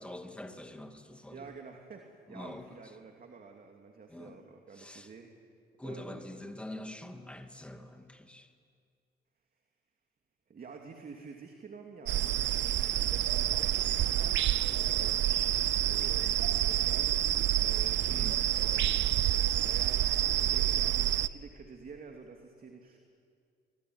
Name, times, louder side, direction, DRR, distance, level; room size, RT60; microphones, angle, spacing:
voice 1, 0.0-1.5 2.3-2.7 4.1-4.4 4.8-5.1 5.8-8.5 18.1-18.4, left 1 dB, 5° left, 5 dB, 2.4 m, -45 dB
voice 2, 1.3-5.3 5.8-6.3 10.5-18.1 18.6-19.2 19.5-23.0, right 5 dB, 45° right, 3 dB, 2.7 m, -49 dB
sound 1, 12.1-21.3, right 12 dB, 65° right, 0.7 m, -28 dB
26.0 x 21.0 x 9.6 m, 2.2 s
cardioid pair, 90°, 20 cm